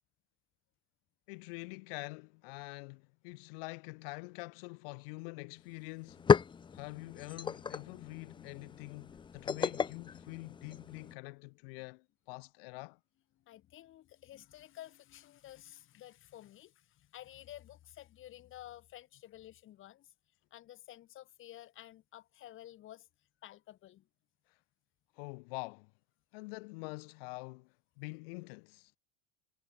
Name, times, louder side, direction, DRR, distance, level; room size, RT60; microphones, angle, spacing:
voice 1, 1.3-6.3 6.7-13.0 24.5-24.6 25.1-25.9 26.3-29.0, left 29 dB, 70° left, 3.5 m, -46 dB
sound 1, 5.6-5.7 5.9-11.1, left 6 dB, 15° left, 0.6 m, -33 dB
voice 2, 13.4-20.1 20.5-23.1 23.4-24.1, left 13 dB, 45° left, 3.2 m, -52 dB
supercardioid pair, 110°, 30 cm